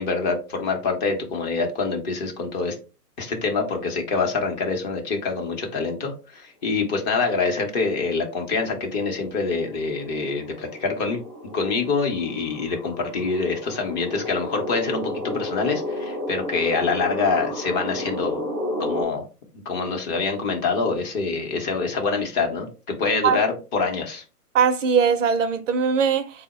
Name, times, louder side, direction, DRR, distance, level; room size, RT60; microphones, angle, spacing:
voice 1, 0.0-2.8 3.2-11.2 11.5-18.4 18.8-19.2 19.7-24.2, left 4 dB, 25° left, 0.8 m, -25 dB
sound 1, 8.4-19.0, left 1 dB, 10° right, 0.7 m, -33 dB
voice 2, 24.5-26.4, right 6 dB, 55° right, 0.5 m, -20 dB
3.8 x 2.0 x 4.1 m
hypercardioid pair, 125°, 47 cm